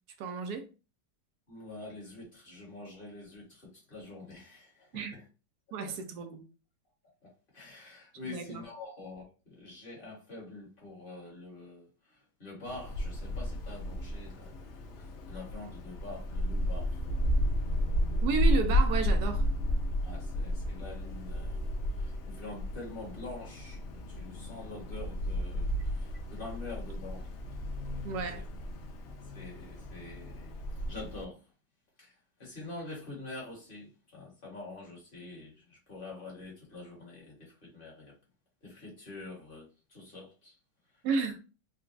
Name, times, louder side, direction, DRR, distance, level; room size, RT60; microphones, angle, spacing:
voice 1, 0.2-0.7 4.9-5.2 5.7-6.4 8.3-8.6 18.2-19.4 28.0-28.4 41.0-41.4, right 5 dB, 75° right, 1.0 m, -32 dB
voice 2, 1.5-5.2 5.9-6.0 7.2-14.6 15.0-17.0 20.0-27.3 28.3-28.4 29.3-31.4 32.0-38.1 38.6-40.6, left 2 dB, 35° left, 1.5 m, -46 dB
Wind, 12.6-31.2, equal, 80° left, 0.6 m, -32 dB
3.8 x 2.2 x 2.5 m
omnidirectional pair, 1.9 m